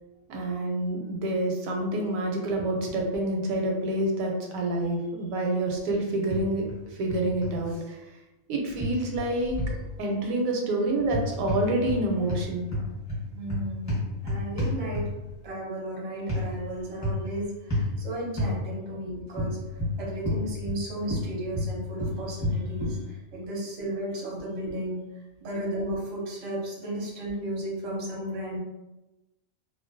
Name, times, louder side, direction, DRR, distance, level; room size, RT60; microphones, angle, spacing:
voice 1, 0.3-8.0 8.5-9.6 10.0-12.7, right 1 dB, 85° right, 1 dB, 1.0 m, -28 dB
sound 1, 6.3-6.8 7.1-7.5 8.8-9.8 11.0-12.0 12.3-15.3 16.3-16.5 17.0-17.3 17.7-17.9 18.4-18.6 19.4-20.8 21.1-23.0, left 1 dB, 15° left, 0.7 m, -29 dB
voice 2, 13.3-15.1 15.4-19.6 20.0-28.6, right 1 dB, 40° right, -4 dB, 0.6 m, -34 dB
2.4 x 2.0 x 2.5 m, 1.0 s
omnidirectional pair, 1.4 m